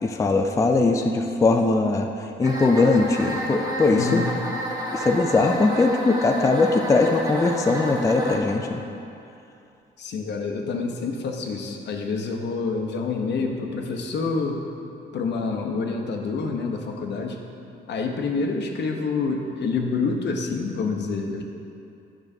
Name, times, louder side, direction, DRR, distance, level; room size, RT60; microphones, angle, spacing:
voice 1, 0.0-4.2 4.9-8.8, left 3 dB, 15° left, 4 dB, 0.3 m, -20 dB
sound 1, 2.4-8.4, right 1 dB, 15° right, 1.1 m, -31 dB
voice 2, 3.9-4.4 10.0-14.6 15.1-17.4 17.9-21.4, left 4 dB, 60° left, 3 dB, 0.8 m, -27 dB
8.6 x 6.0 x 2.7 m, 2.7 s
cardioid pair, 90°, 20 cm